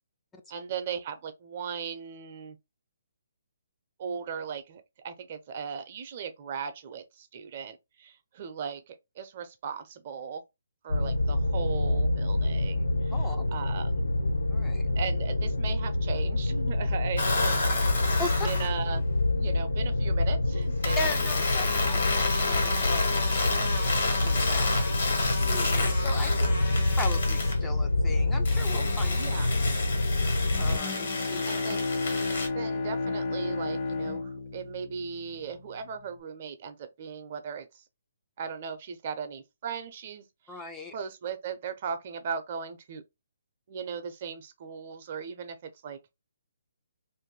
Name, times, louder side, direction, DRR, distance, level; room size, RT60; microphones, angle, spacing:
voice 1, 0.5-2.6 4.0-10.4 10.8-14.1 15.0-17.6 18.0-19.0 19.3-21.0 29.1-29.5 31.4-31.8 32.5-37.8 38.4-40.6 40.9-43.0 43.7-46.0, right 6 dB, 45° right, 0.6 m, -38 dB
sound 1, 10.9-30.8, left 2 dB, 85° left, 0.4 m, -27 dB
voice 2, 13.1-13.5 14.5-14.9 18.2-18.5 21.0-29.2 30.6-31.4 40.5-41.0, left 2 dB, 10° left, 0.4 m, -39 dB
sound 2, 17.2-18.7 20.8-27.6 28.4-32.5, left 3 dB, 60° left, 1.4 m, -30 dB
Bowed string instrument, 30.5-35.4, left 3 dB, 40° left, 0.9 m, -32 dB
2.6 x 2.6 x 3.8 m
hypercardioid pair, 145°, 0 cm